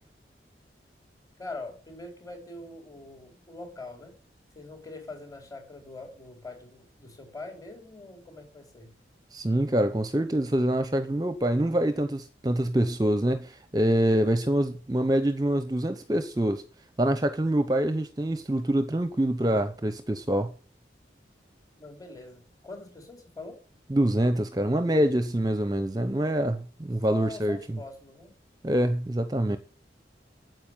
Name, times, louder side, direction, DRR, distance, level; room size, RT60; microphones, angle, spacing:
voice 1, 1.4-4.2 4.5-8.9 21.8-23.6 27.1-28.3, left 3 dB, 20° left, 4.6 m, -43 dB
voice 2, 9.3-16.6 17.0-20.5 23.9-27.6 28.6-29.6, right 1 dB, 20° right, 0.7 m, -25 dB
9.5 x 7.9 x 9.0 m
head